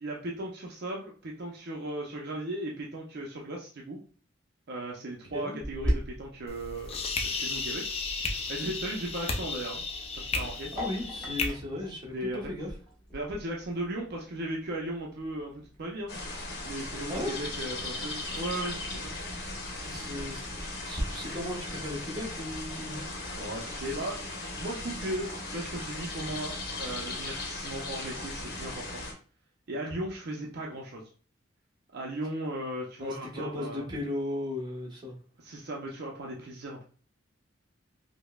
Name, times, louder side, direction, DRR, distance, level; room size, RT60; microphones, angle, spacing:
voice 1, 0.0-4.0 4.7-7.9 8.5-10.7 12.1-12.4 13.1-16.1 16.6-19.1 23.3-24.3 24.6-29.0 29.7-31.0 31.9-33.9 35.4-36.8, right 1 dB, 55° right, -1 dB, 0.5 m, -37 dB
Sink (filling or washing), 5.6-21.0, equal, 5° left, 1.0 m, -41 dB
sound 1, 6.5-11.5, left 3 dB, 30° left, 0.5 m, -34 dB
voice 2, 10.7-12.7 17.1-17.4 19.8-20.5 20.8-23.0 33.0-35.1, left 1 dB, 25° right, -3 dB, 1.0 m, -36 dB
sound 2, 16.1-29.1, left 2 dB, 55° left, 0.8 m, -38 dB
5.1 x 2.0 x 2.2 m, 0.41 s
head